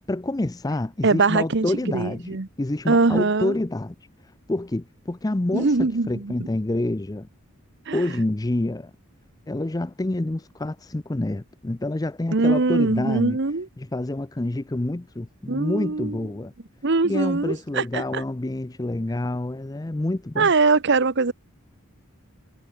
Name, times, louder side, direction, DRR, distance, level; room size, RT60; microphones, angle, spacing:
voice 1, 0.0-4.0 4.5-7.3 7.9-8.9 9.5-13.4 13.8-16.5 17.0-20.5, left 1 dB, 15° left, 0.5 m, -27 dB
voice 2, 1.0-1.7 1.9-2.5 2.9-3.5 5.5-6.3 7.9-8.0 12.3-13.7 15.5-16.2 16.8-18.2 20.4-21.3, right 3 dB, 55° right, 1.0 m, -22 dB
head